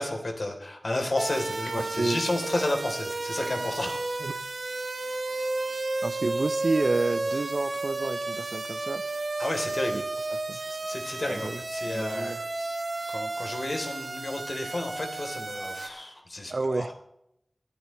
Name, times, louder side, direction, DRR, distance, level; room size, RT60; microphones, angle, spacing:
voice 1, 0.0-4.0 9.4-10.0 10.5-12.4 13.1-16.9, left 1 dB, 65° left, 3 dB, 3.3 m, -32 dB
sound 1, 1.2-15.9, right 2 dB, 85° right, 1.8 m, -32 dB
voice 2, 1.8-2.2 4.2-4.4 6.0-9.0 9.9-10.0 10.3-10.6 11.3-12.4 16.5-16.9, right 3 dB, 70° right, 13 dB, 0.7 m, -30 dB
22.5 x 11.5 x 3.1 m, 0.78 s
wide cardioid pair, 60°, 0 cm